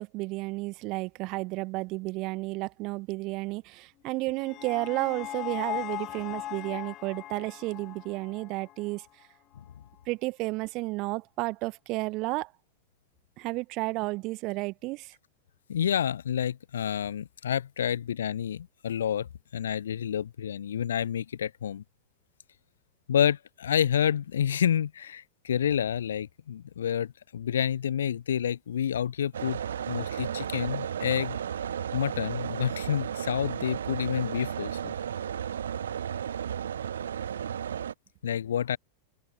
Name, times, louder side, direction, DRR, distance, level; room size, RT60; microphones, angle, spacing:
voice 1, 0.0-9.1 10.0-12.5 13.4-15.2, right 23 dB, 40° right, 1.6 m, -32 dB
sound 1, 4.0-9.2, left 15 dB, 35° left, 6.1 m, -39 dB
voice 2, 15.7-21.8 23.1-29.6 29.9-31.4 31.9-34.9 38.2-38.8, left 9 dB, 65° left, 0.8 m, -29 dB
sound 2, 29.3-37.9, right 9 dB, 65° right, 1.2 m, -34 dB
open air
figure-of-eight pair, 90°, 0 cm